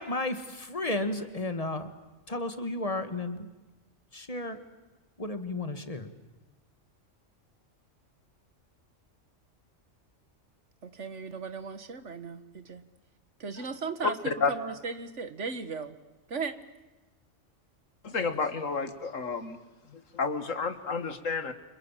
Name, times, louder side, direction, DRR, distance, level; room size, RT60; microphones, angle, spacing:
voice 1, 0.0-1.9 2.3-3.5 4.1-4.6 5.2-6.1, left 2 dB, 30° left, 9 dB, 2.0 m, -33 dB
voice 2, 10.8-12.8 13.4-16.0 16.3-16.6, right 4 dB, 70° right, 11 dB, 1.9 m, -37 dB
voice 3, 18.0-19.6 19.9-21.5, left 4 dB, 90° left, 10 dB, 2.3 m, -31 dB
29.5 x 26.0 x 7.5 m, 1.1 s
omnidirectional pair, 1.3 m